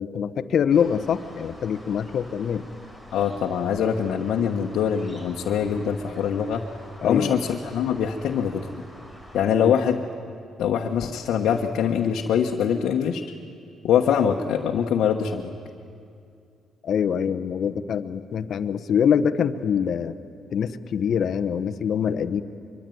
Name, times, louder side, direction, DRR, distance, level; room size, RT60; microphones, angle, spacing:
voice 1, 0.0-2.7 7.0-7.4 9.6-9.7 16.8-20.1 20.5-22.4, left 7 dB, 60° left, 10 dB, 1.0 m, -24 dB
sound 1, 0.7-9.5, equal, 20° right, 5.4 m, -47 dB
voice 2, 3.1-6.6 7.0-8.8 9.3-10.0 10.6-13.2 13.8-15.5, left 8 dB, 75° left, 0 dB, 1.3 m, -23 dB
24.0 x 23.5 x 9.4 m, 2.4 s
cardioid pair, 90°, 0 cm